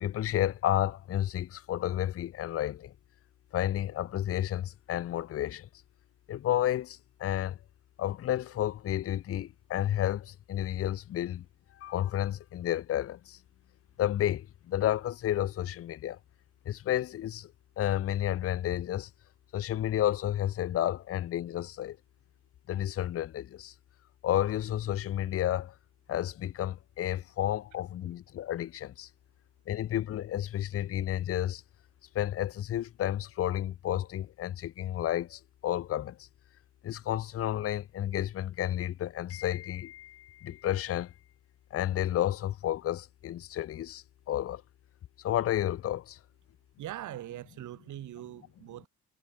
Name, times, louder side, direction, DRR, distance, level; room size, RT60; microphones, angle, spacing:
voice 1, 0.0-2.9 3.5-5.7 6.3-7.6 8.0-11.4 11.8-13.4 14.0-16.2 16.7-17.5 17.8-19.1 19.5-22.0 22.7-23.7 24.2-25.7 26.1-29.1 29.7-31.6 32.1-36.1 36.8-41.1 41.7-44.6 45.2-46.2, left 12 dB, 50° left, 0.6 m, -31 dB
voice 2, 46.8-48.9, right 13 dB, 75° right, 3.0 m, -42 dB
cardioid pair, 90°, 30 cm